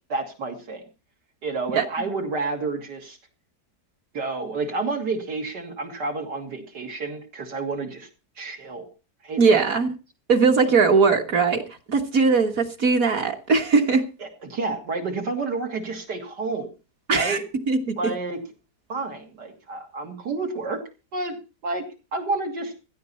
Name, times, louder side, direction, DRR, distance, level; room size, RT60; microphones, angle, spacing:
voice 1, 0.1-0.8 1.4-3.2 4.1-8.1 8.4-8.9 9.2-9.6 14.2-16.7 17.1-17.4 18.0-18.4 18.9-20.8 21.1-21.3 21.6-21.8 22.1-22.7, right 3 dB, 90° right, 3.3 m, -30 dB
voice 2, 9.4-9.9 10.3-14.0 17.1-17.4 17.7-18.0, right 4 dB, 60° right, 1.7 m, -20 dB
16.5 x 12.0 x 4.3 m
omnidirectional pair, 1.8 m